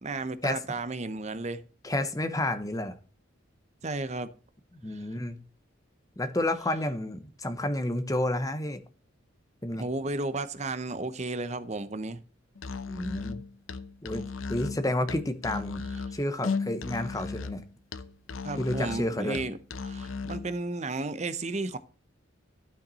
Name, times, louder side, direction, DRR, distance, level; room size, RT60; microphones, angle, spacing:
voice 1, 0.0-1.6 3.8-4.3 4.9-5.0 9.8-12.2 18.4-19.6 19.8-21.8, right 2 dB, 35° right, 0.7 m, -33 dB
voice 2, 1.8-2.9 4.8-5.4 6.2-8.8 9.6-9.8 12.9-13.4 14.0-17.6 18.6-19.4, left 1 dB, 15° left, 0.9 m, -30 dB
Musical instrument, 12.5-20.5, left 4 dB, 85° left, 0.7 m, -36 dB
12.0 x 5.9 x 4.1 m
head